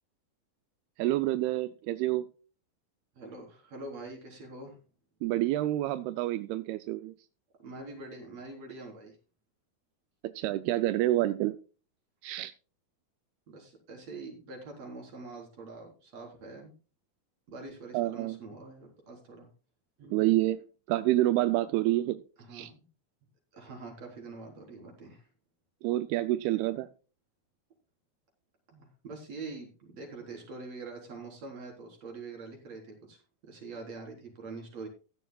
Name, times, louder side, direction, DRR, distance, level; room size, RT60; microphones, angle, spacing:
voice 1, 1.0-2.3 5.2-7.1 10.2-11.6 12.2-12.5 17.9-18.4 20.1-20.6 20.9-22.2 22.5-22.7 25.8-26.9, right 15 dB, 85° right, 12 dB, 2.6 m, -28 dB
voice 2, 3.2-4.7 7.6-9.2 13.5-16.7 17.5-19.5 20.0-20.3 22.4-22.9 23.5-25.3 28.7-33.2 33.5-34.9, right 3 dB, 45° right, 1 dB, 4.9 m, -44 dB
15.5 x 11.5 x 2.3 m, 0.35 s
omnidirectional pair, 4.4 m